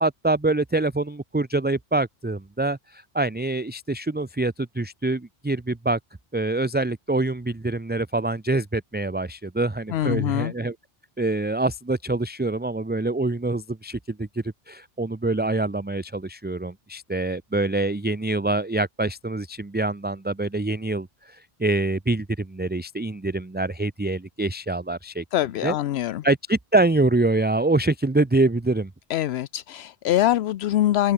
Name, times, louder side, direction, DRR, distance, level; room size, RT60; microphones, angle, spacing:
voice 1, 0.0-6.0 6.3-10.7 11.2-14.3 14.7-25.2 25.6-25.7 26.2-28.9, right 2 dB, 15° right, 0.5 m, -25 dB
voice 2, 9.9-10.5 25.3-26.3 29.1-31.1, left 13 dB, 80° left, 0.8 m, -23 dB
omnidirectional pair, 1.1 m